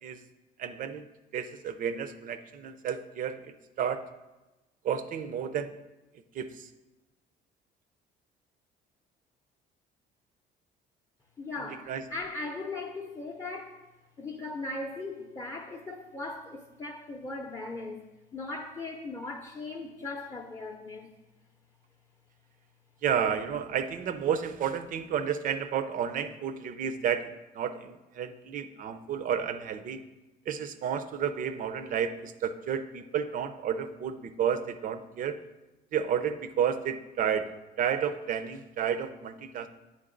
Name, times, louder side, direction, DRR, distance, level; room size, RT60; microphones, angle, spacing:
voice 1, 0.6-1.1 1.3-4.0 4.8-5.7 6.3-6.7 11.7-12.0 23.0-30.0 30.5-35.4 35.9-37.5 37.8-39.7, right 8 dB, 55° right, 10 dB, 0.5 m, -31 dB
voice 2, 11.4-13.8 14.2-18.0 18.3-21.1, left 3 dB, 20° left, 0 dB, 0.6 m, -38 dB
9.1 x 3.6 x 3.8 m, 1.1 s
cardioid pair, 110°, 17 cm